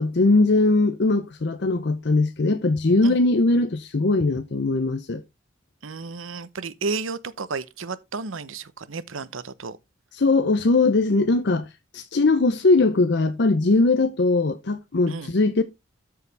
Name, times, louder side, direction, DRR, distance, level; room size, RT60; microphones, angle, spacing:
voice 1, 0.0-5.2 10.1-11.7 11.9-15.6, left 3 dB, 55° left, 0.6 m, -20 dB
voice 2, 5.8-9.8 15.1-15.3, right 4 dB, 85° right, 0.8 m, -32 dB
13.5 x 4.9 x 3.3 m
head